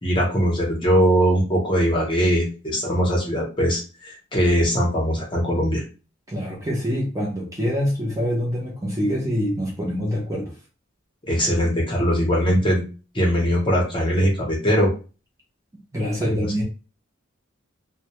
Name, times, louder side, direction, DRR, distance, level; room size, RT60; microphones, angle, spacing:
voice 1, 0.0-5.8 11.3-12.8 13.1-14.9, equal, 25° left, -2 dB, 0.7 m, -21 dB
voice 2, 6.3-10.5 15.9-16.6, equal, 15° right, -2 dB, 0.6 m, -25 dB
2.1 x 2.1 x 2.8 m, 0.34 s
head